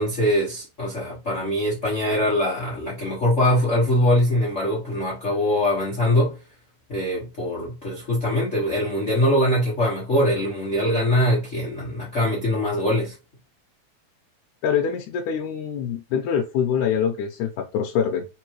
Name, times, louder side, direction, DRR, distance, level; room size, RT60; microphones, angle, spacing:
voice 1, 0.0-6.4 6.9-13.1, left 1 dB, 50° left, 0.8 m, -22 dB
voice 2, 14.6-18.3, left 7 dB, 80° left, 2.1 m, -24 dB
4.5 x 3.7 x 3.0 m
omnidirectional pair, 3.8 m